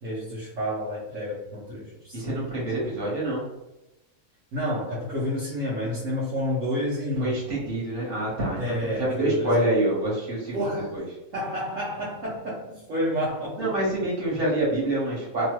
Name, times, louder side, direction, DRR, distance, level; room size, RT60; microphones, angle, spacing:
voice 1, 0.0-2.8 4.5-7.4 8.5-9.7 10.5-10.9 11.3-13.8, equal, 65° right, -7 dB, 1.1 m, -30 dB
voice 2, 2.1-3.4 7.2-10.7 10.9-11.0 13.6-15.5, right 1 dB, 40° right, -6 dB, 1.3 m, -26 dB
2.8 x 2.3 x 2.9 m, 0.96 s
omnidirectional pair, 1.6 m